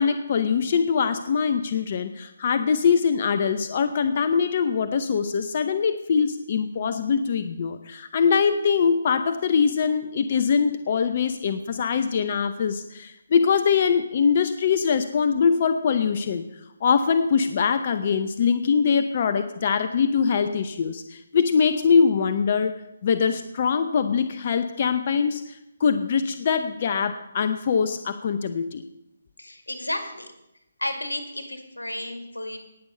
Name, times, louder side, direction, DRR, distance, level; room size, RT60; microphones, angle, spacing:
voice 1, 0.0-16.4 16.8-22.7 23.0-28.8, left 6 dB, 45° left, 10 dB, 0.8 m, -23 dB
voice 2, 29.4-30.3 30.8-32.6, left 1 dB, 90° left, 5 dB, 2.1 m, -32 dB
18.5 x 7.2 x 5.4 m, 0.87 s
figure-of-eight pair, 145°, 0 cm